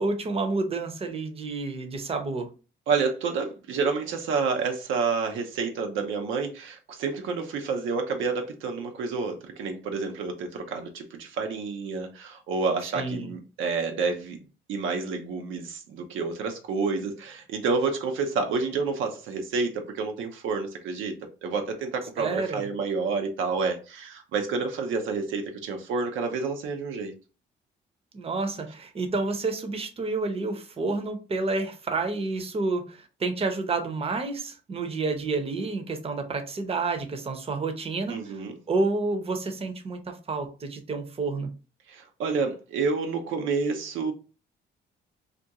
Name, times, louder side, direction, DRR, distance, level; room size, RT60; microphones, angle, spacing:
voice 1, 0.0-2.5 12.9-13.3 22.2-22.7 28.1-38.2 38.7-41.5, right 3 dB, 30° right, 0.6 m, -29 dB
voice 2, 2.9-14.4 14.7-21.2 21.4-27.1 38.1-38.5 41.9-44.1, right 4 dB, 80° right, 0.6 m, -29 dB
2.5 x 2.2 x 2.7 m
cardioid pair, 90°, 20 cm